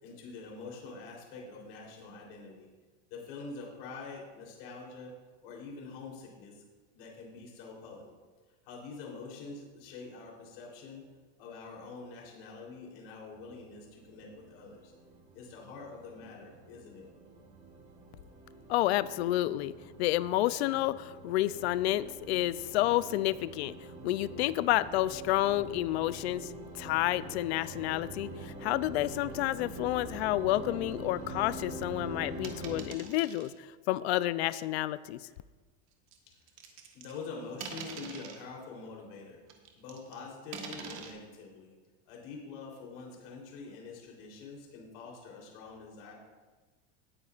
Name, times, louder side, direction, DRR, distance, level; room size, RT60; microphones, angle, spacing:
voice 1, 0.0-2.7 3.1-5.1 5.4-6.6 6.9-8.1 8.6-11.0 11.4-14.9 15.3-17.1 36.3-36.4 36.9-39.4 39.7-41.7 42.0-46.1, left 4 dB, 55° left, -1 dB, 3.4 m, -45 dB
sound 1, 13.4-32.8, right 1 dB, 25° right, 1.5 m, -45 dB
voice 2, 18.7-19.7 20.0-23.7 24.0-35.2, left 15 dB, 80° left, 16 dB, 0.5 m, -30 dB
sound 2, 32.4-33.5 34.5-34.7 36.1-37.2 37.6-38.4 39.5-40.1 40.5-41.1, right 6 dB, 40° right, 1.4 m, -44 dB
17.5 x 9.4 x 2.4 m, 1.3 s
supercardioid pair, 165°, 32 cm